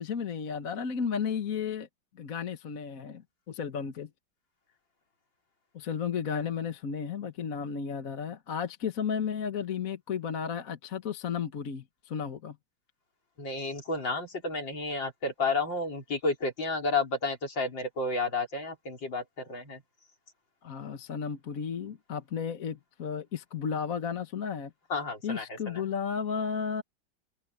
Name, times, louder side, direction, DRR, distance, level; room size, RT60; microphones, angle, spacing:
voice 1, 0.0-1.9 2.1-4.1 5.7-12.6 20.6-24.7 25.2-26.8, left 7 dB, 45° left, 1.5 m, -33 dB
voice 2, 13.4-19.8 24.9-25.8, left 3 dB, 65° left, 5.1 m, -31 dB
omnidirectional pair, 2.2 m